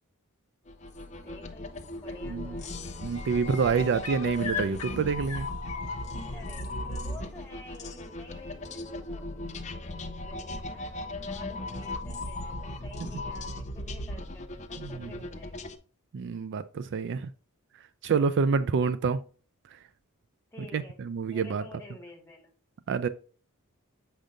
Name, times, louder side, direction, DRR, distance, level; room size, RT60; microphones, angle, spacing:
sound 1, 0.7-15.8, left 1 dB, 35° left, 0.7 m, -37 dB
voice 1, 1.2-2.7 3.3-3.5 6.3-9.3 9.9-15.7 18.4-19.0 20.5-21.0 21.3-22.5, left 2 dB, 15° left, 1.9 m, -50 dB
sound 2, 2.0-2.3 2.6-6.7 8.3-8.4, left 6 dB, 90° left, 1.1 m, -40 dB
voice 2, 3.0-5.5 14.8-15.1 16.1-17.3 18.0-19.2 19.7-19.8 20.7-21.6 22.9-23.1, right 5 dB, 55° right, 0.4 m, -27 dB
7.4 x 5.1 x 2.6 m
head